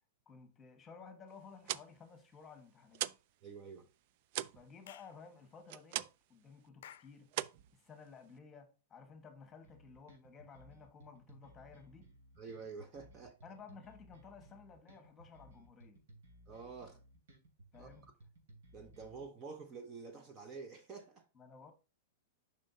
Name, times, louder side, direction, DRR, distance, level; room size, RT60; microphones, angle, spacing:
voice 1, 0.2-3.1 4.5-7.3 7.7-12.1 13.4-16.0 17.7-18.1 21.3-21.7, left 5 dB, 15° left, 1.4 m, -55 dB
sound 1, 1.4-3.3 3.6-6.4 6.7-7.0 7.3-8.4, right 13 dB, 45° right, 0.3 m, -41 dB
voice 2, 3.4-3.9 12.4-13.4 16.5-17.0 17.8-17.9 18.7-21.3, right 4 dB, 25° right, 0.7 m, -48 dB
Clapping / Chirp tweet, 4.9-5.2 6.8-7.2, left 11 dB, 70° left, 0.5 m, -54 dB
sound 2, 9.6-19.2, right 1 dB, 85° right, 2.8 m, -60 dB
7.3 x 5.5 x 2.8 m
supercardioid pair, 155°, 0 cm